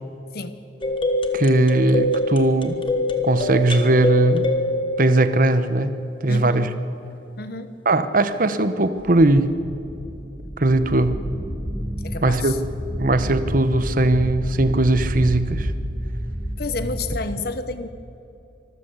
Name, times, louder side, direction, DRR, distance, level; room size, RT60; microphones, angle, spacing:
sound 1, 0.8-5.9, left 1 dB, 30° left, 1.7 m, -24 dB
voice 1, 1.3-2.8 3.2-4.5 5.0-5.9 6.2-6.7 7.8-9.5 10.6-11.1 12.2-12.5 13.0-15.7, right 2 dB, 50° right, 11 dB, 1.1 m, -19 dB
voice 2, 6.3-6.7 7.4-7.8 12.0-12.6 16.6-17.9, left 3 dB, 55° left, 11 dB, 1.0 m, -30 dB
sound 2, 9.0-17.3, equal, 20° right, 1.6 m, -30 dB
25.5 x 14.0 x 8.3 m, 2.8 s
head